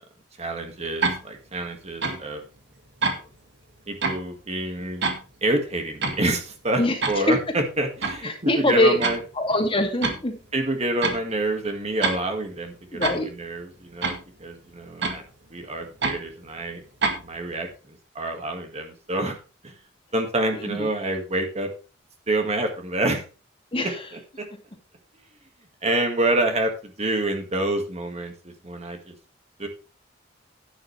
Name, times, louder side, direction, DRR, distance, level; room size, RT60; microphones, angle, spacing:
voice 1, 0.4-2.4 3.9-5.1 5.4-9.2 10.5-15.2 15.5-16.8 17.2-19.4 19.6-19.7 20.1-21.7 22.3-23.3 23.8-24.5 25.8-29.2 29.6-29.7, right 1 dB, 35° right, 4 dB, 1.9 m, -27 dB
sound 1, 1.0-1.2 2.0-2.2 3.0-3.2 4.0-4.2 5.0-5.2 6.0-6.2 7.0-7.2 8.0-8.2 9.0-9.2 10.0-10.2 11.0-11.2 12.0-12.2 13.0-13.2 14.0-14.2 15.0-15.2 16.0-16.2 17.0-17.2, right 3 dB, 65° right, 1.9 m, -25 dB
voice 2, 8.2-9.0 9.4-10.4 12.9-13.3 20.7-20.9 23.7-24.0, left 1 dB, 30° left, 3 dB, 2.4 m, -22 dB
11.0 x 10.0 x 3.3 m, 0.33 s
head